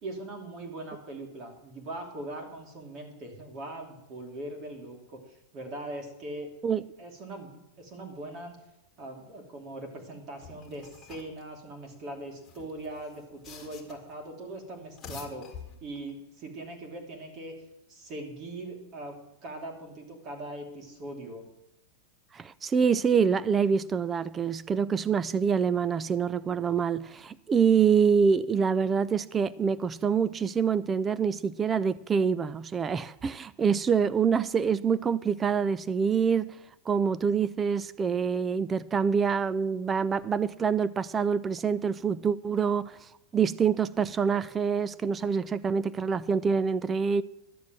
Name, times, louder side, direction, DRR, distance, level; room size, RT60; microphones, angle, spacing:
voice 1, 0.0-6.5 7.0-8.6 9.0-17.5 17.9-21.5, right 1 dB, 35° right, 2.6 m, -41 dB
sound 1, 10.4-11.4 12.3-14.1 14.8-16.1, left 6 dB, 15° left, 2.2 m, -47 dB
voice 2, 22.3-36.5 36.9-42.9 43.3-47.2, right 6 dB, 15° right, 0.4 m, -26 dB
12.0 x 7.4 x 7.4 m
supercardioid pair, 150°, 0 cm